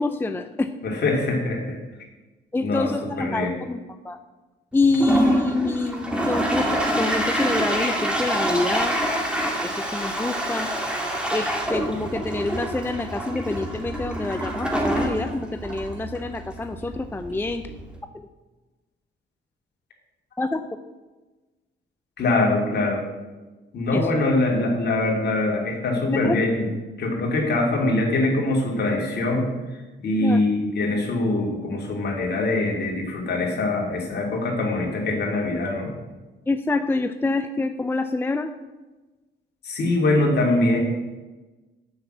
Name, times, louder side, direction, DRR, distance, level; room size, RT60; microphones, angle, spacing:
voice 1, 0.0-0.7 2.5-4.2 4.7-9.0 9.6-10.7 11.3-17.6 20.4-20.7 23.9-24.0 26.2-26.4 30.2-30.4 36.5-38.5, left 2 dB, 10° left, 8 dB, 0.5 m, -26 dB
voice 2, 0.8-1.8 2.6-3.5 22.2-23.0 23.7-26.7 27.0-29.5 30.0-35.9 39.6-40.8, left 2 dB, 55° left, 0 dB, 2.8 m, -23 dB
Toilet flush, 4.8-18.0, right 1 dB, 5° right, 2.3 m, -27 dB
7.9 x 5.8 x 7.8 m, 1.2 s
cardioid pair, 90°, 20 cm